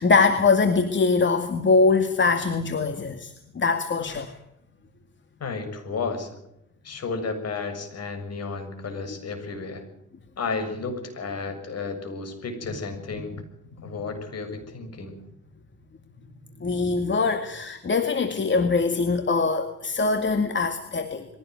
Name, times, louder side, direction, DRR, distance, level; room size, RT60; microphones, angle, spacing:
voice 1, 0.0-4.3 16.6-21.3, left 4 dB, 40° left, 8 dB, 2.1 m, -22 dB
voice 2, 5.4-6.4 6.8-9.8 10.4-13.4 13.8-15.2, left 4 dB, 55° left, 7 dB, 7.2 m, -32 dB
22.5 x 17.0 x 9.4 m, 0.82 s
cardioid pair, 90°, 30 cm